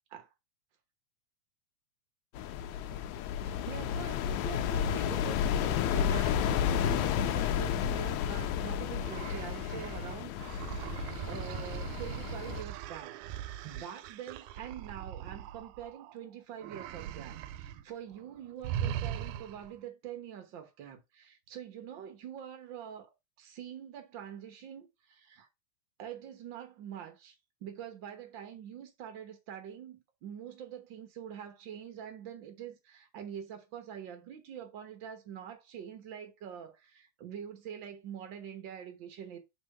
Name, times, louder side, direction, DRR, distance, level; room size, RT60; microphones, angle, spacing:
sound 1, 2.3-12.6, left 9 dB, 75° left, 2.0 m, -32 dB
voice 1, 3.4-10.8 11.3-13.2 13.6-25.5 26.0-27.4 27.6-39.4, right 9 dB, 70° right, 1.1 m, -45 dB
sound 2, 9.0-16.2 16.6-17.8 18.1-18.3 18.6-19.8, right 11 dB, 85° right, 2.0 m, -40 dB
6.1 x 3.6 x 5.4 m
omnidirectional pair, 3.5 m